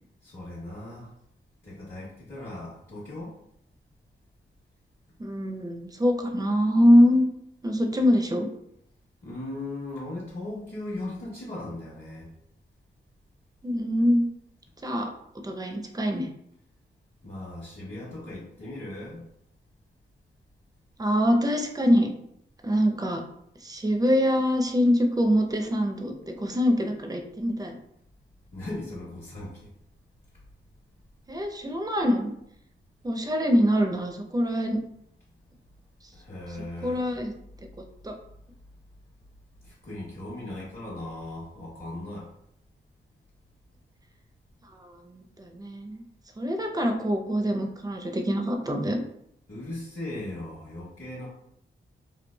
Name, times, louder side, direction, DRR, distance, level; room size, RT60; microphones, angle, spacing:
voice 1, 0.2-1.1 1.6-3.3 9.2-12.3 17.2-19.2 28.5-29.7 36.1-37.0 39.6-42.3 49.5-51.3, left 1 dB, 50° left, -7 dB, 1.1 m, -38 dB
voice 2, 5.2-7.3 7.6-8.5 13.6-14.3 14.8-15.1 15.4-16.3 21.0-22.1 22.6-23.2 23.6-27.8 31.3-32.3 33.0-34.8 36.8-37.3 38.0-38.1 44.7-46.0 46.4-49.0, equal, 20° right, 4 dB, 0.5 m, -24 dB
3.1 x 2.3 x 2.2 m, 0.74 s
cardioid pair, 45°, 21 cm